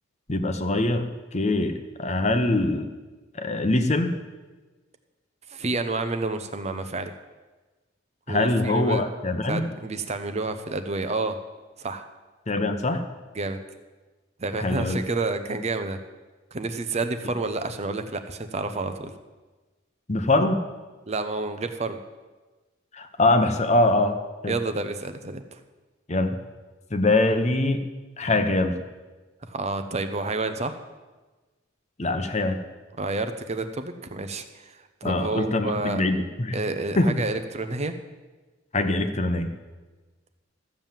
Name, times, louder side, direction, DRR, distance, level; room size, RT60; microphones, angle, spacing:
voice 1, 0.3-2.9 3.3-4.2 8.3-9.7 12.5-13.0 14.6-15.0 20.1-20.6 22.9-24.2 24.4-24.5 26.1-26.4 26.9-27.9 28.2-28.8 32.0-32.6 35.0-36.6 37.0-37.2 38.7-39.5, left 2 dB, 35° left, 7 dB, 1.0 m, -23 dB
voice 2, 5.5-7.1 8.3-9.0 9.5-11.4 11.8-12.0 13.3-13.6 14.4-16.0 16.5-19.1 21.1-22.0 24.5-25.6 29.5-30.8 33.0-36.0 36.5-37.9, right 3 dB, 35° right, 8 dB, 0.8 m, -29 dB
14.0 x 7.3 x 7.5 m, 1.2 s
head